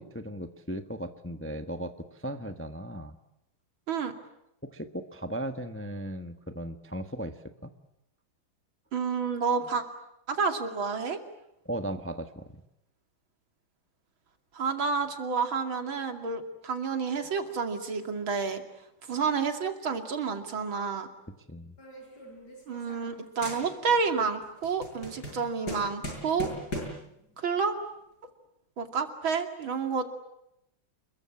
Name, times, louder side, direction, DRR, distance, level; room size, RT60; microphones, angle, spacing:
voice 1, 0.0-3.2 4.6-7.7 11.6-12.6 21.5-21.8, right 1 dB, 10° left, 8 dB, 1.0 m, -37 dB
voice 2, 8.9-9.8 10.3-11.2 14.5-18.6 19.1-21.1 22.7-26.5 27.4-27.7 28.8-30.1, right 5 dB, 70° right, 6 dB, 3.3 m, -29 dB
sound 1, 21.8-23.2 23.4-24.1 24.4-27.1, equal, 50° left, 8.1 m, -39 dB
29.0 x 22.5 x 8.7 m, 0.84 s
omnidirectional pair, 2.3 m